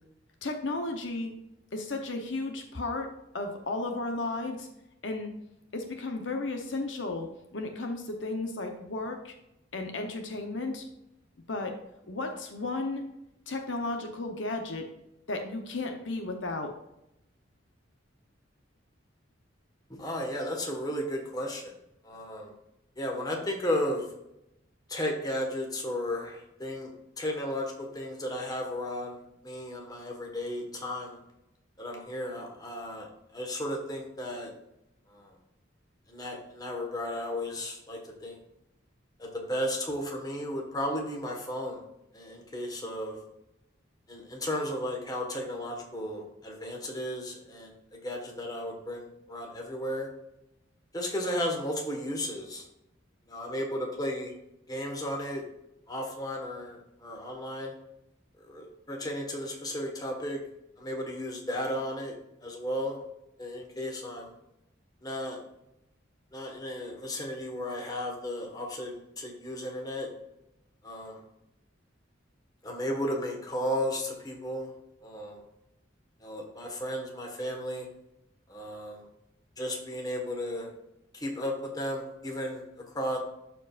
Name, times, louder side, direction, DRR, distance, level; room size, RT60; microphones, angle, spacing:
voice 1, 0.4-1.3 1.7-3.1 3.3-4.7 5.0-5.3 5.7-9.3 9.7-10.9 11.5-11.7 12.1-13.0 13.5-14.9 15.3-16.7, left 2 dB, 70° left, 4 dB, 0.9 m, -34 dB
voice 2, 19.9-21.7 22.0-22.5 23.0-24.0 24.9-31.2 31.8-33.1 33.3-34.5 35.1-35.3 36.1-38.4 39.2-41.8 42.1-43.2 44.1-50.1 50.9-52.7 53.3-54.3 54.7-55.4 55.9-57.7 58.4-60.4 60.8-62.1 62.4-63.0 63.4-64.3 65.0-65.4 66.3-70.1 70.8-71.2 72.6-74.7 75.0-75.4 76.2-77.9 78.5-79.1 79.6-80.7 81.1-82.6 82.9-83.2, left 1 dB, 20° left, 1 dB, 1.5 m, -34 dB
12.5 x 4.6 x 2.5 m, 0.85 s
head